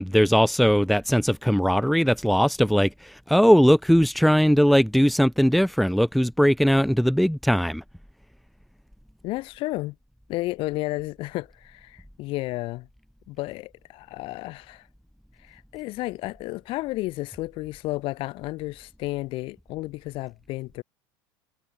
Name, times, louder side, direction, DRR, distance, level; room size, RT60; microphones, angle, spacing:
voice 1, 0.0-7.8, equal, ahead, 2.5 m, -20 dB
voice 2, 9.2-10.0 10.3-12.9 13.3-14.9 15.4-20.8, left 20 dB, 55° left, 7.9 m, -32 dB
supercardioid pair, 140°, 11 cm